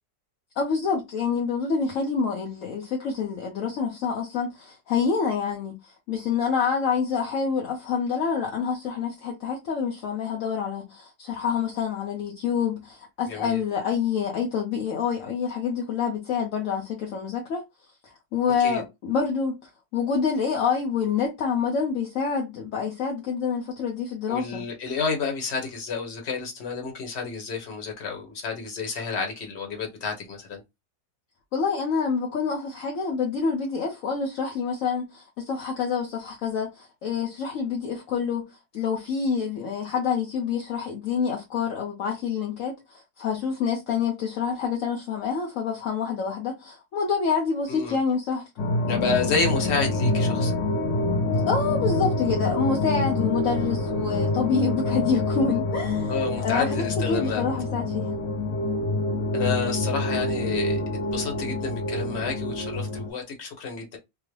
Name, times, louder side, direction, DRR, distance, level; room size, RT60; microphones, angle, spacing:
voice 1, 0.6-17.6 18.3-19.6 19.9-24.6 31.5-38.5 38.7-48.5 51.5-58.1, left 6 dB, 60° left, 0.9 m, -27 dB
voice 2, 13.3-13.6 18.6-18.8 24.3-30.6 47.7-48.0 48.9-50.5 56.1-57.4 59.3-60.8 61.1-64.0, left 5 dB, 45° left, 1.1 m, -30 dB
sound 1, 48.6-63.1, left 2 dB, 85° left, 1.5 m, -26 dB
3.7 x 2.1 x 3.1 m
omnidirectional pair, 1.9 m